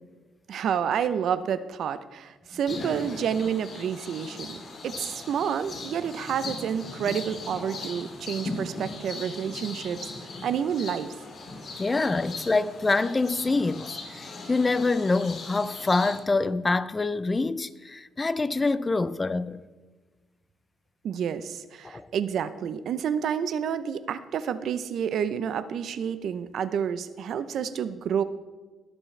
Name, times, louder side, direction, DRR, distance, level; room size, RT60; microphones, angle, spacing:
voice 1, 0.5-4.6 4.8-10.1 10.4-11.1 21.0-28.2, right 8 dB, 70° right, 0.6 m, -29 dB
sound 1, 2.7-16.2, left 3 dB, 50° left, 3.4 m, -39 dB
voice 2, 11.8-19.6 21.8-22.1, left 3 dB, 25° left, 0.5 m, -26 dB
21.5 x 7.4 x 3.3 m
cardioid pair, 90°, 0 cm